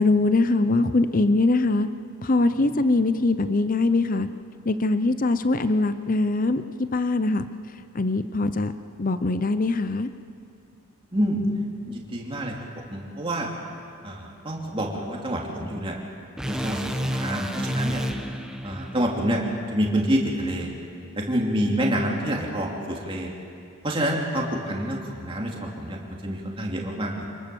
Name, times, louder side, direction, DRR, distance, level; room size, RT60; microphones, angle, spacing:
voice 1, 0.0-1.9 2.2-4.3 4.7-7.4 7.9-8.7 9.0-10.1, left 2 dB, 40° left, 11 dB, 0.7 m, -22 dB
voice 2, 11.9-12.5 12.9-13.5 14.0-16.0 16.4-18.0 18.6-19.4 19.7-20.7 21.1-23.3 23.8-26.0 26.2-27.3, right 1 dB, 25° right, -1 dB, 2.9 m, -27 dB
sound 1, 16.4-20.6, equal, 5° right, 1.0 m, -32 dB
27.0 x 20.0 x 7.0 m, 2.5 s
head